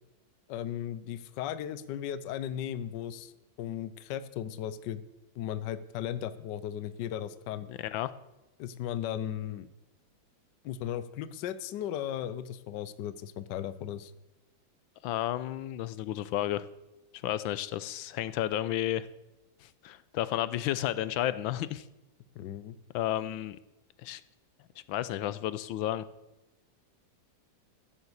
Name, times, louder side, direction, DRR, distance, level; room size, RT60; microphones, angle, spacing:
voice 1, 0.5-3.3 3.6-5.0 5.3-7.7 8.6-9.7 10.6-14.1 22.4-22.7, left 10 dB, 70° left, 14 dB, 1.2 m, -36 dB
voice 2, 7.7-8.1 15.0-16.7 17.2-19.1 19.8-21.8 22.9-23.6 24.0-24.2 24.9-26.0, left 13 dB, 85° left, 15 dB, 1.4 m, -32 dB
14.5 x 7.2 x 7.9 m, 0.97 s
omnidirectional pair, 2.1 m